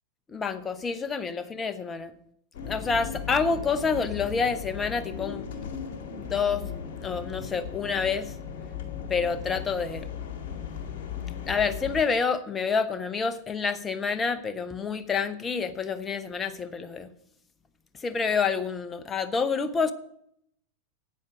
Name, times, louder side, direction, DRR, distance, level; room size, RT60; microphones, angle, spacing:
voice 1, 0.3-2.1 2.6-5.7 6.1-6.7 7.0-8.3 9.1-10.1 11.5-17.1 18.0-19.9, left 5 dB, 20° left, 11 dB, 0.9 m, -28 dB
sound 1, 2.5-12.0, left 7 dB, 50° left, 2.0 m, -37 dB
9.7 x 9.0 x 6.3 m, 0.72 s
figure-of-eight pair, 90°, 0 cm